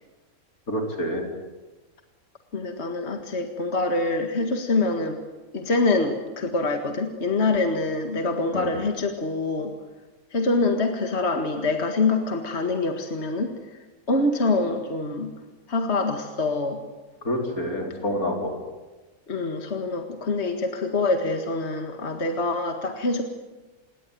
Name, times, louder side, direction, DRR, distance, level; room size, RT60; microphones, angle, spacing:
voice 1, 0.7-1.2 8.5-8.7 17.2-18.6, equal, 80° left, 2 dB, 5.0 m, -27 dB
voice 2, 2.5-5.2 5.5-9.7 10.3-13.8 14.1-15.3 15.7-16.8 19.3-23.2, left 3 dB, 50° left, 5 dB, 2.1 m, -25 dB
27.5 x 21.0 x 9.3 m, 1.2 s
omnidirectional pair, 1.5 m